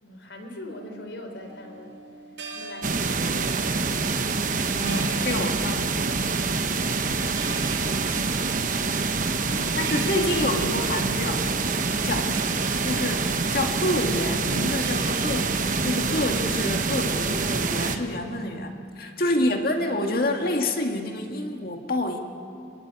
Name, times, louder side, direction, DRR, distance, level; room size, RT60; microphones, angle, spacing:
voice 1, 0.0-1.9 2.5-3.9 9.5-10.2 12.0-12.3 19.3-19.6, left 1 dB, 80° left, 5 dB, 3.9 m, -41 dB
sound 1, 1.4-17.8, right 2 dB, 80° right, 7.2 m, -41 dB
sound 2, 2.8-18.0, right 4 dB, 45° right, 1.1 m, -26 dB
voice 2, 4.7-6.0 9.8-11.5 12.0-12.3 12.8-22.2, left 1 dB, 55° left, 3 dB, 2.2 m, -28 dB
27.0 x 21.0 x 8.5 m, 2.5 s
head